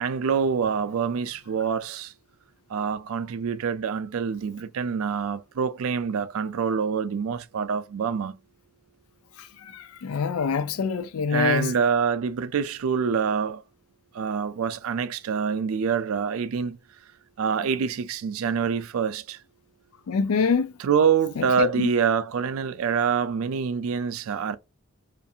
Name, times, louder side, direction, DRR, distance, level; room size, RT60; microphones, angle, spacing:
voice 1, 0.0-2.1 2.7-8.4 11.3-13.6 14.1-16.8 17.4-19.4 20.8-24.6, right 6 dB, 75° right, 0.4 m, -26 dB
voice 2, 9.6-11.7 20.1-20.7 21.4-21.9, left 5 dB, 85° left, 0.4 m, -25 dB
2.7 x 2.5 x 2.3 m
head